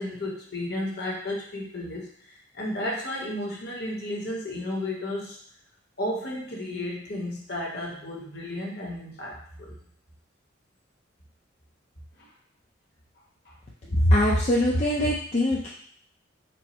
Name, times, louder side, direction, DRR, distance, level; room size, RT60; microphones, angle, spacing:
voice 1, 0.0-5.4 6.0-9.7 12.2-12.3 13.4-13.5, left 1 dB, 50° left, -2 dB, 1.1 m, -33 dB
voice 2, 13.9-15.7, left 1 dB, 35° left, -5 dB, 0.5 m, -22 dB
4.5 x 2.1 x 4.2 m, 0.62 s
head